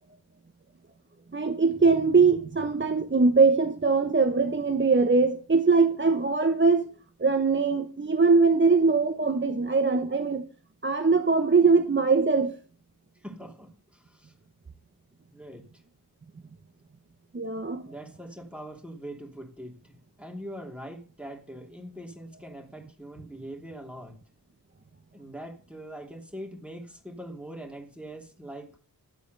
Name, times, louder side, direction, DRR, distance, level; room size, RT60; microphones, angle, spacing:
voice 1, 1.3-6.9 7.2-10.5 10.8-12.5 17.3-17.8, right 4 dB, 30° right, 1.1 m, -22 dB
voice 2, 13.1-14.3 15.3-15.6 17.8-24.2 25.1-28.8, right 1 dB, 5° right, 3.0 m, -42 dB
11.5 x 8.1 x 6.7 m
wide cardioid pair, 110°, 41 cm